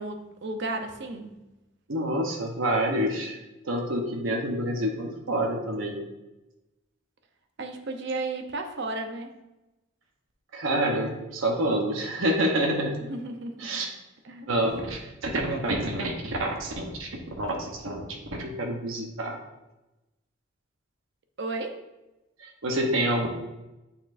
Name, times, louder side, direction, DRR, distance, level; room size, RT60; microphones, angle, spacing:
voice 1, 0.0-1.4 7.6-9.3 13.0-13.8 14.2-14.6 21.4-21.8, right 2 dB, 60° right, 6 dB, 0.7 m, -34 dB
voice 2, 1.9-3.4 3.6-6.0 10.5-12.9 13.6-13.9 14.5-17.1 17.4-18.1 18.4-19.4 22.4-23.3, right 1 dB, 80° right, 1 dB, 1.0 m, -27 dB
9.1 x 4.3 x 2.6 m, 1.0 s
head